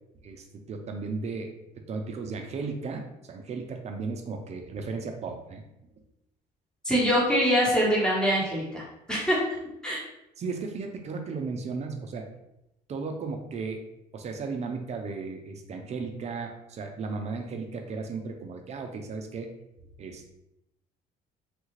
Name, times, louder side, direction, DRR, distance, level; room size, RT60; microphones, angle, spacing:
voice 1, 0.2-5.6 10.4-12.3 12.9-13.8 14.1-19.5 20.0-20.3, right 4 dB, 40° right, 4 dB, 0.5 m, -35 dB
voice 2, 6.8-8.8 9.1-9.4 9.8-10.0, equal, 5° left, -6 dB, 1.2 m, -24 dB
3.3 x 2.3 x 3.1 m, 0.85 s
cardioid pair, 110°, 17 cm